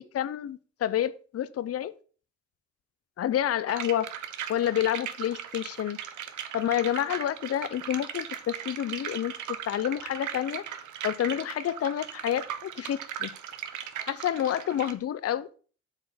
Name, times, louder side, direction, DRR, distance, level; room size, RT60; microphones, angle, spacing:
voice 1, 0.0-1.9 3.2-4.1 4.5-6.0 6.5-9.3 9.7-10.6 11.0-13.3 14.1-15.5, left 11 dB, 50° left, 0.7 m, -29 dB
sound 1, 3.7-14.9, right 9 dB, 75° right, 1.1 m, -38 dB
7.8 x 4.7 x 6.8 m
cardioid pair, 90°, 30 cm